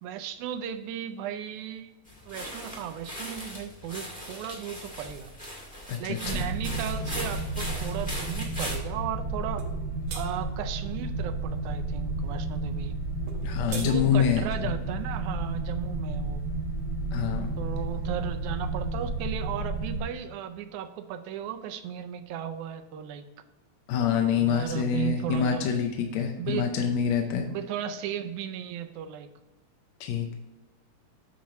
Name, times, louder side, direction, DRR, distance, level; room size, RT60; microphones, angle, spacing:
voice 1, 0.0-1.9 2.3-5.3 6.0-9.7 10.1-13.0 13.7-16.4 17.6-23.2 24.3-25.8 26.4-26.7 27.5-29.3, right 9 dB, 90° right, 8 dB, 2.0 m, -35 dB
sound 1, 2.1-8.8, equal, 5° left, 1.2 m, -39 dB
voice 2, 5.9-6.4 13.4-14.7 17.1-17.5 23.9-27.5 30.0-30.3, left 7 dB, 75° left, 3 dB, 1.8 m, -26 dB
sound 2, 6.2-20.0, right 2 dB, 20° right, 1.1 m, -32 dB
sound 3, 9.6-9.7 10.1-10.3 13.3-13.9, right 4 dB, 60° right, 1.5 m, -39 dB
8.8 x 3.1 x 5.7 m, 1.1 s
omnidirectional pair, 3.3 m